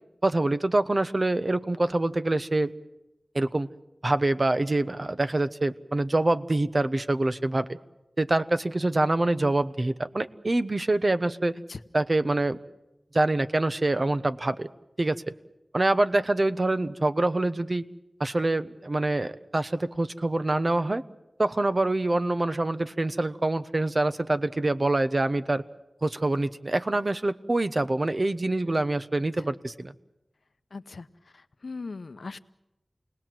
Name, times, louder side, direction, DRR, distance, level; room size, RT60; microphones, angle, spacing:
voice 1, 0.2-2.7 3.3-3.7 4.0-7.7 8.2-11.6 11.9-12.6 13.1-14.7 15.0-15.3 15.7-17.8 18.2-21.0 21.4-25.6 26.0-29.9, right 2 dB, 40° right, 11 dB, 1.0 m, -25 dB
voice 2, 30.7-32.4, left 3 dB, 75° left, 12 dB, 0.8 m, -40 dB
29.0 x 19.5 x 7.7 m, 0.95 s
wide cardioid pair, 65°, 0 cm